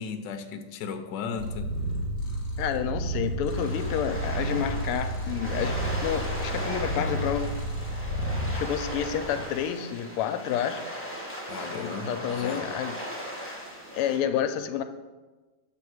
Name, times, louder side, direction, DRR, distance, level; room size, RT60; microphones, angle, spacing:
voice 1, 0.0-1.7 11.5-12.7, left 5 dB, 70° left, 6 dB, 1.1 m, -35 dB
Purr, 1.4-9.4, right 1 dB, 35° left, 1.4 m, -31 dB
voice 2, 2.6-7.5 8.5-10.8 11.7-12.9 14.0-14.8, left 9 dB, 90° left, 9 dB, 1.5 m, -29 dB
sound 1, 3.5-14.2, equal, 5° left, 1.2 m, -38 dB
7.8 x 3.6 x 6.1 m, 1.2 s
omnidirectional pair, 2.4 m